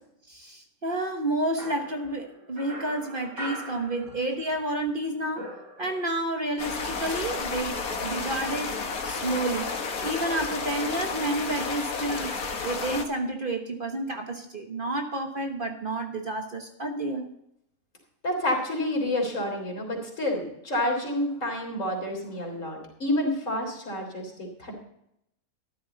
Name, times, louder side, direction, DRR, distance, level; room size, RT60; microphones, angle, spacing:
voice 1, 0.3-5.5 5.8-8.7 9.0-9.7 10.0-12.4 12.6-17.3, right 1 dB, 40° right, 3 dB, 1.3 m, -30 dB
sound 1, 1.6-4.6 4.9-6.3, right 1 dB, 80° right, 4.2 m, -41 dB
sound 2, 6.6-13.0, left 4 dB, 90° left, 1.9 m, -31 dB
voice 2, 18.2-24.8, left 1 dB, 60° left, 1 dB, 3.9 m, -29 dB
13.5 x 12.0 x 4.0 m, 0.77 s
omnidirectional pair, 1.5 m